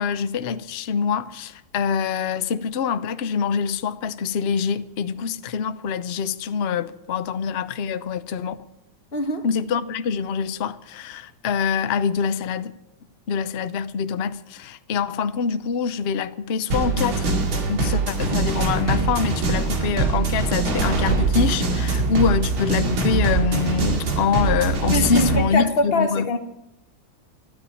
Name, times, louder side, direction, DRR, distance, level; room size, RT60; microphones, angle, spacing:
voice 1, 0.0-8.6 9.4-12.7 13.3-17.3 17.7-26.3, left 6 dB, 65° left, 0.6 m, -25 dB
voice 2, 9.1-9.4 24.9-26.4, left 2 dB, 30° left, 1.8 m, -23 dB
sound 1, 16.7-25.4, right 3 dB, 75° right, 3.1 m, -23 dB
13.5 x 12.5 x 8.6 m
omnidirectional pair, 2.3 m